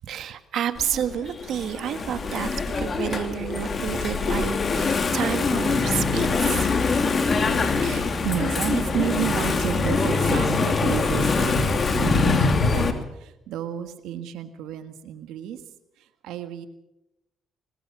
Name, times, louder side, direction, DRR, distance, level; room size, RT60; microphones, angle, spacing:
voice 1, 0.0-6.8, right 9 dB, 70° right, 11 dB, 1.6 m, -30 dB
Engine / Mechanisms, 0.8-12.9, left 4 dB, 40° left, 2.7 m, -23 dB
voice 2, 7.6-12.8 13.2-15.6 16.2-16.7, right 10 dB, 90° right, 9 dB, 1.7 m, -31 dB
21.5 x 20.0 x 6.2 m, 0.88 s
cardioid pair, 90°, 0 cm